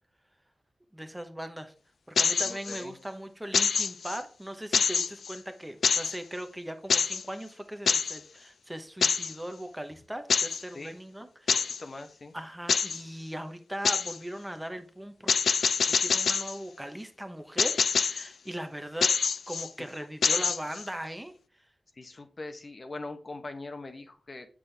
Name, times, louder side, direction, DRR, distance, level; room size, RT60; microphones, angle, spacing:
voice 1, 0.9-1.7 2.1-11.7 12.3-15.4 15.8-19.2 19.5-21.3, right 1 dB, 10° right, 0.9 m, -39 dB
sound 1, 2.2-2.8 3.5-4.2 4.7-5.4 5.8-6.2 6.9-7.2 7.9-8.2 9.0-9.4 10.3-10.6 11.5-11.8 12.7-13.0 13.9-14.2 15.3-16.6 17.6-18.3 19.0-19.7 20.2-20.9, left 6 dB, 85° left, 0.4 m, -26 dB
voice 2, 2.4-2.9 10.7-11.0 11.5-12.3 19.8-20.4 21.9-24.5, left 2 dB, 45° left, 1.0 m, -42 dB
7.4 x 6.2 x 3.4 m
cardioid pair, 70°, 0 cm